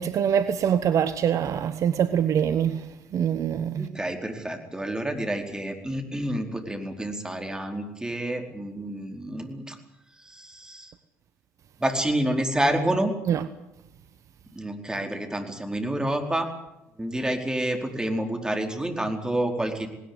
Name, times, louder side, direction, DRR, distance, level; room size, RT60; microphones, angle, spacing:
voice 1, 0.0-3.9 13.3-13.4, right 8 dB, 50° right, 1.1 m, -24 dB
voice 2, 3.8-9.8 10.3-10.9 11.8-13.1 14.6-16.5 17.0-19.9, right 1 dB, 10° right, 4.6 m, -28 dB
19.0 x 19.0 x 9.6 m
hypercardioid pair, 60°, 7 cm